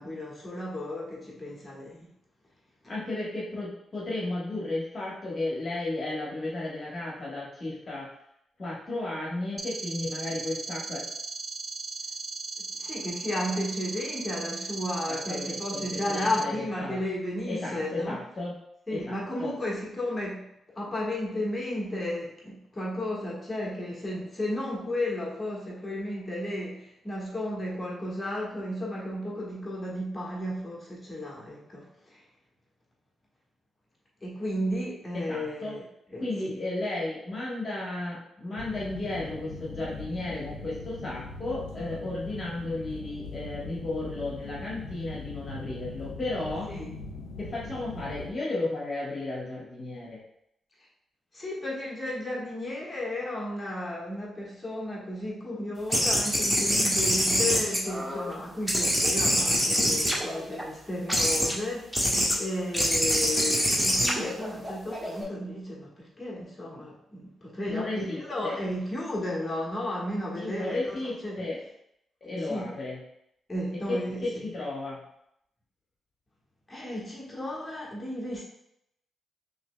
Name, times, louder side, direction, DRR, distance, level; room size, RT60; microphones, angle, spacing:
voice 1, 0.0-2.1 12.6-18.2 18.9-20.5 20.7-32.2 34.2-36.6 46.7-46.9 51.3-71.0 71.2-71.5 72.4-72.7 73.5-74.4 76.7-78.4, left 1 dB, 25° left, -3 dB, 1.5 m, -33 dB
voice 2, 2.9-8.1 8.6-11.0 15.1-16.5 16.8-17.0 17.5-18.6 18.9-19.5 35.1-35.8 36.2-46.7 47.4-50.2 67.7-68.6 70.3-71.6 72.2-73.0 73.7-75.0, left 2 dB, 45° left, -5 dB, 1.4 m, -34 dB
sound 1, 9.6-16.4, right 4 dB, 30° right, 0.3 m, -37 dB
sound 2, 38.6-48.3, left 3 dB, 85° left, 0.6 m, -41 dB
sound 3, 55.9-58.3 58.7-60.6 61.1-61.5 61.9-62.4 62.7-65.2, equal, ahead, 1.3 m, -25 dB
5.6 x 3.1 x 2.3 m, 0.77 s
supercardioid pair, 50°, 0 cm